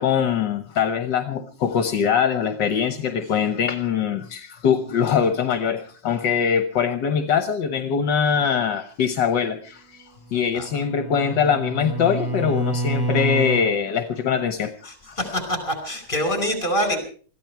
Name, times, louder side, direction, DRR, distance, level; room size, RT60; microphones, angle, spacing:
voice 1, 0.0-15.2, left 7 dB, 70° left, 9 dB, 1.7 m, -23 dB
Bowed string instrument, 10.3-13.7, right 2 dB, 10° right, 5.3 m, -27 dB
voice 2, 14.9-17.0, equal, 25° left, 8 dB, 5.1 m, -25 dB
21.5 x 14.5 x 4.6 m, 0.42 s
omnidirectional pair, 2.0 m